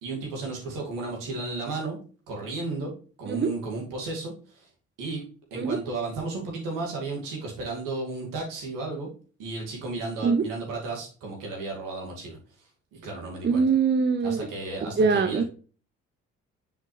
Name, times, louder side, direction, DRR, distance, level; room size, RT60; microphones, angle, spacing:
voice 1, 0.0-2.0 2.3-2.9 3.2-4.7 5.0-5.2 5.5-9.1 9.4-12.4 12.9-13.6 14.2-15.4, right 3 dB, 75° right, 2.4 m, -33 dB
voice 2, 13.4-14.5 14.8-15.4, right 5 dB, 35° right, 0.7 m, -23 dB
7.5 x 5.0 x 3.3 m
hypercardioid pair, 45°, 33 cm